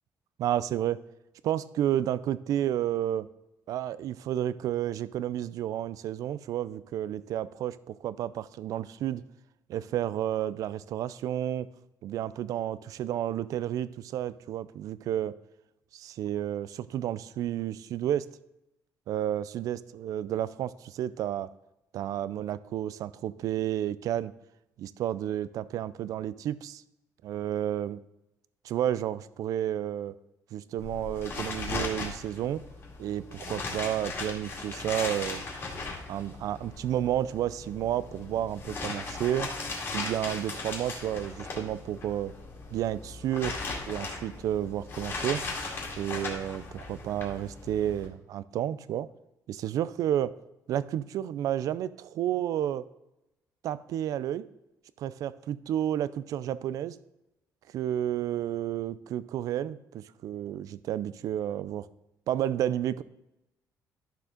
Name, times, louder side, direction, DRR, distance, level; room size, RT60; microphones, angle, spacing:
voice 1, 0.4-1.0 1.4-3.3 3.7-9.2 9.7-11.7 12.0-15.4 15.9-18.3 19.1-21.5 21.9-24.3 24.8-26.8 27.2-28.0 28.6-30.2 30.5-32.6 33.0-35.4 36.1-39.5 39.9-42.3 42.7-43.6 43.9-45.4 46.0-49.1 49.5-50.3 50.7-52.9 53.6-54.5 55.0-57.0 57.7-61.9 62.3-63.0, right 11 dB, 65° right, 17 dB, 0.4 m, -31 dB
sound 1, 30.8-48.1, left 3 dB, 35° left, 2.2 m, -38 dB
12.0 x 6.8 x 3.8 m, 0.90 s
cardioid pair, 170°, 7 cm